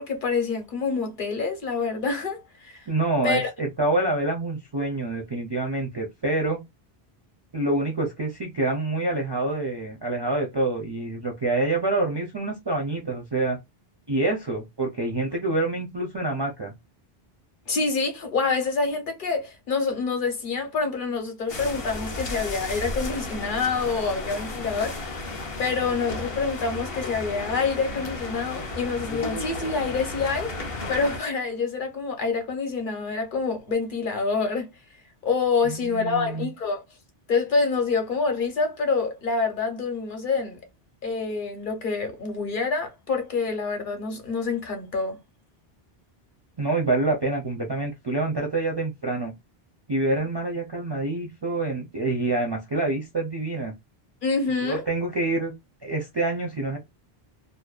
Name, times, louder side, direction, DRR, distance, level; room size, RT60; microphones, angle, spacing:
voice 1, 0.0-2.9 3.2-3.5 17.7-34.7 35.2-36.8 37.3-40.6 41.0-45.2 54.2-54.8, left 4 dB, 55° left, 0.9 m, -27 dB
voice 2, 2.9-6.6 7.5-13.6 14.1-16.7 35.6-36.5 46.6-49.3 49.9-53.7 54.6-55.5 55.8-56.8, right 2 dB, 35° right, 0.5 m, -26 dB
sound 1, 21.5-31.2, left 2 dB, 40° left, 0.6 m, -33 dB
2.6 x 2.1 x 2.3 m
omnidirectional pair, 1.1 m